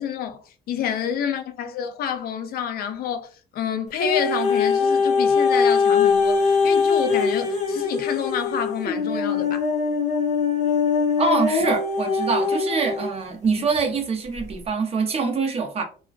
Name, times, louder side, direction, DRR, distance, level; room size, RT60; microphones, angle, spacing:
voice 1, 0.0-9.7, left 8 dB, 65° left, 0.4 m, -28 dB
sound 1, 4.0-13.1 13.8-13.9, left 5 dB, 45° left, 0.8 m, -22 dB
voice 2, 11.2-15.8, right 4 dB, 35° right, 0.6 m, -24 dB
2.3 x 2.2 x 2.4 m
cardioid pair, 110°, 17 cm